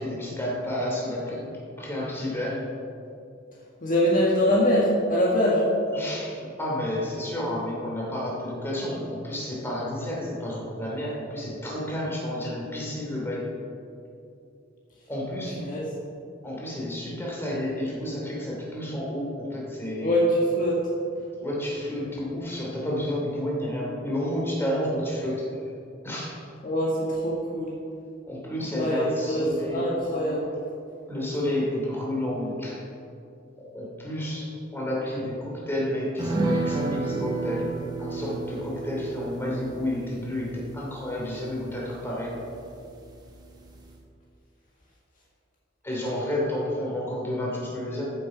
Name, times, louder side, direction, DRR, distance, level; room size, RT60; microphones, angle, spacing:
voice 1, 0.0-2.7 5.9-13.6 15.1-15.6 16.4-20.2 21.4-25.6 26.0-26.4 28.3-29.9 31.1-32.8 33.6-42.5 45.8-48.1, left 1 dB, 10° left, -4 dB, 2.8 m, -30 dB
voice 2, 3.8-5.6 15.6-15.8 20.0-20.8 26.6-27.7 28.7-30.5, equal, 45° left, -4 dB, 1.6 m, -23 dB
sound 1, 36.2-43.0 43.3-43.4 43.7-43.9, right 3 dB, 20° right, 1.4 m, -32 dB
14.5 x 7.0 x 5.0 m, 2.5 s
head